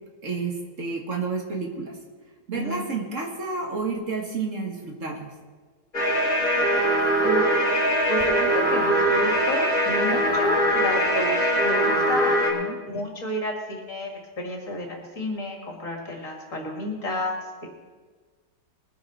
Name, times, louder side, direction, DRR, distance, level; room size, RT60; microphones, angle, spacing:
voice 1, 0.2-2.0 2.5-5.3 12.5-12.8, right 4 dB, 50° right, 1 dB, 1.9 m, -30 dB
voice 2, 2.5-2.8 7.2-7.6 8.1-12.4 12.9-17.7, left 1 dB, 50° left, 1 dB, 2.6 m, -31 dB
sound 1, 5.9-12.5, right 1 dB, 30° left, 3.0 m, -22 dB
21.0 x 9.6 x 4.1 m, 1.4 s
omnidirectional pair, 1.8 m